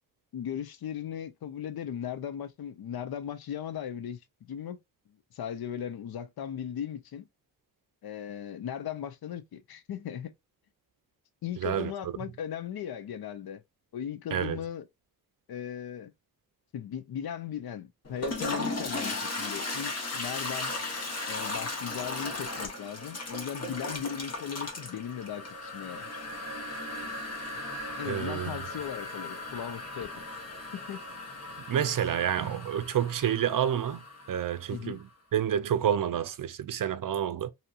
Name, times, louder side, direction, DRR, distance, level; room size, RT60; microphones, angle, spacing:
voice 1, 0.3-4.2 4.5-4.8 5.1-7.3 8.0-10.3 11.4-13.6 13.9-14.9 15.5-16.1 16.7-20.7 21.3-26.2 28.0-30.2 30.7-31.0 34.7-35.0, left 9 dB, 70° left, 0.6 m, -37 dB
voice 2, 11.6-11.9 14.3-14.6 28.1-28.6 31.7-34.0 34.3-35.0 35.3-37.5, right 9 dB, 60° right, 0.5 m, -29 dB
Toilet flush, 18.0-34.8, left 2 dB, 40° left, 1.0 m, -37 dB
2.8 x 2.8 x 2.3 m
cardioid pair, 80°, 38 cm